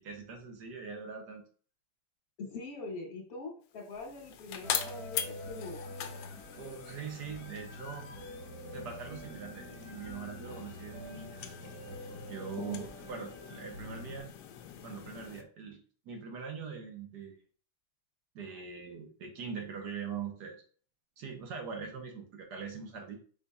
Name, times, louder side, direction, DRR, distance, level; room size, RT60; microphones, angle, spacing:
voice 1, 0.0-1.4 6.6-8.1 8.7-11.4 12.3-14.3 14.8-17.4 18.3-20.6 21.2-23.2, right 6 dB, 65° right, 2 dB, 1.5 m, -42 dB
voice 2, 2.4-5.8 12.6-12.8, left 3 dB, 55° left, -1 dB, 1.5 m, -42 dB
sound 1, 3.7-15.4, left 9 dB, 75° left, 1.1 m, -43 dB
sound 2, 4.6-14.2, equal, 45° right, 1.5 m, -46 dB
5.0 x 4.0 x 2.3 m, 0.42 s
omnidirectional pair, 1.9 m